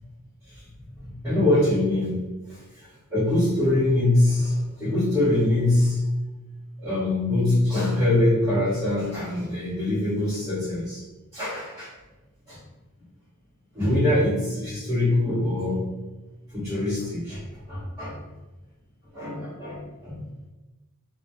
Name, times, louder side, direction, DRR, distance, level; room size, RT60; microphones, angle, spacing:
voice 1, 1.0-6.0 6.8-11.0 11.3-11.9 12.5-12.6 13.7-15.9 16.5-18.2 19.1-20.2, left 1 dB, 10° right, -13 dB, 0.8 m, -24 dB
2.2 x 2.1 x 2.7 m, 1.1 s
head